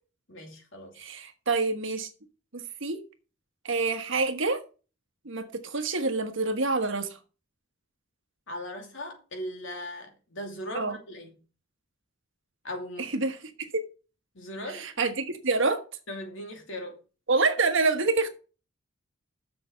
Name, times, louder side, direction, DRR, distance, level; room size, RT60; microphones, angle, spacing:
voice 1, 0.3-0.9 8.5-11.3 12.6-13.1 14.3-14.9 16.1-17.0, equal, 65° left, 2.8 m, -38 dB
voice 2, 1.0-2.1 2.5-3.0 3.6-4.6 5.2-7.2 10.7-11.0 13.0-13.7 14.7-15.8 17.3-18.3, right 3 dB, 65° right, 1.4 m, -27 dB
6.9 x 6.8 x 6.4 m
head